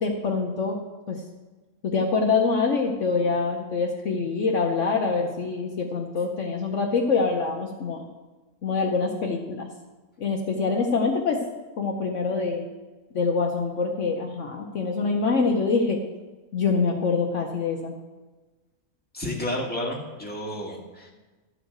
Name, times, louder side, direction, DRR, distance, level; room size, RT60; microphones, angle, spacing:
voice 1, 0.0-0.8 1.1-1.2 1.8-8.0 8.6-9.7 10.2-11.4 11.8-12.7 13.1-16.0 16.5-17.9, left 4 dB, 60° left, 1 dB, 1.1 m, -25 dB
voice 2, 19.1-21.1, left 1 dB, 5° left, -2 dB, 2.0 m, -31 dB
13.0 x 5.0 x 7.9 m, 1.2 s
omnidirectional pair, 1.6 m